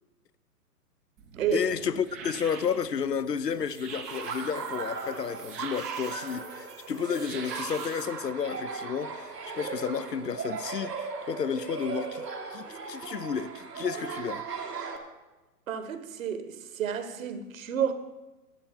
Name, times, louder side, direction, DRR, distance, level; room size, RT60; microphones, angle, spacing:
sound 1, 1.2-8.0, right 5 dB, 10° right, 0.4 m, -45 dB
voice 1, 1.5-14.4, left 7 dB, 85° left, 0.8 m, -32 dB
Laughter, 4.1-15.0, right 5 dB, 80° right, 2.1 m, -37 dB
voice 2, 15.7-17.9, right 7 dB, 55° right, 1.5 m, -30 dB
12.5 x 7.7 x 7.2 m
figure-of-eight pair, 125°, 48 cm